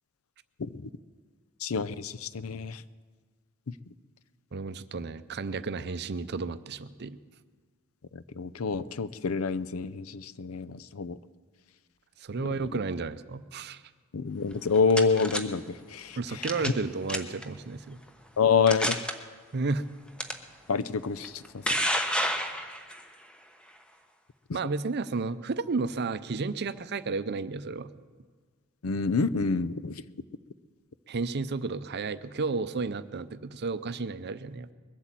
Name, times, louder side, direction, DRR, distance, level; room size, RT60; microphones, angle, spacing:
voice 1, 1.6-2.8 8.1-11.2 14.1-16.7 18.4-19.0 20.7-21.9 28.8-30.0, left 5 dB, 85° left, 16 dB, 0.6 m, -28 dB
voice 2, 4.5-7.2 12.2-13.8 16.2-18.0 19.5-19.8 24.5-27.9 31.1-34.7, right 4 dB, 50° right, 14 dB, 0.6 m, -32 dB
sound 1, 14.5-15.4 16.4-16.8 17.1-17.4 18.1-18.2 18.7-19.1 20.2-20.3 21.2-23.0, equal, 5° left, 1.0 m, -29 dB
21.5 x 8.2 x 7.5 m, 1.5 s
head